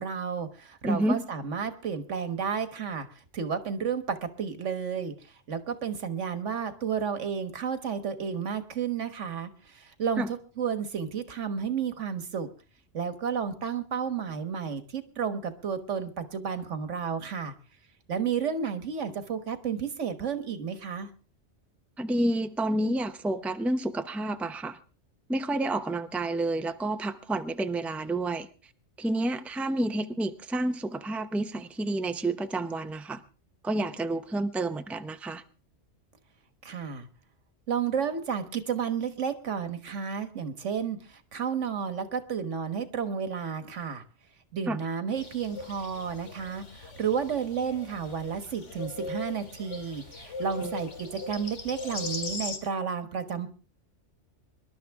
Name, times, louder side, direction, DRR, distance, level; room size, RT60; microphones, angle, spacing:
voice 1, 0.0-3.1 3.3-5.1 5.5-12.5 12.9-17.5 18.1-21.1 36.6-37.1 37.7-44.0 44.5-53.5, right 7 dB, 85° right, 1.7 m, -32 dB
voice 2, 0.8-1.2 10.2-10.3 22.0-24.8 25.3-28.5 29.0-33.2 33.6-35.4 44.7-44.8 50.6-50.7, right 1 dB, ahead, 0.6 m, -29 dB
sound 1, 45.1-52.6, left 3 dB, 85° left, 2.4 m, -39 dB
25.5 x 11.5 x 3.5 m
omnidirectional pair, 1.2 m